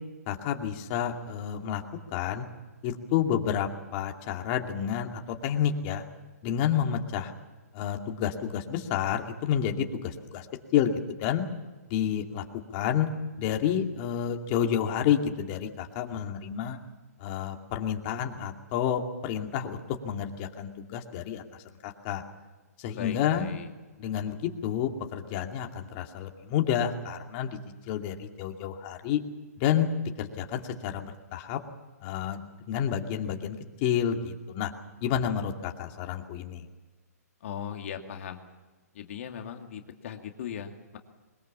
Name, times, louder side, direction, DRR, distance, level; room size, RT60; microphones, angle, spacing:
voice 1, 0.3-1.8 2.1-2.5 2.8-6.0 6.4-7.3 7.7-10.5 10.7-11.4 11.9-12.4 12.7-13.1 13.4-16.8 17.2-19.8 20.0-21.4 21.8-22.2 22.8-23.5 24.0-27.6 27.9-29.2 29.6-29.9 30.2-31.6 32.0-34.7 35.0-36.7, left 9 dB, 35° left, 3 dB, 2.4 m, -29 dB
voice 2, 22.9-23.7 37.4-38.4 38.9-41.0, left 8 dB, 55° left, 4 dB, 2.3 m, -38 dB
22.0 x 21.0 x 7.4 m, 1.2 s
hypercardioid pair, 145°, 9 cm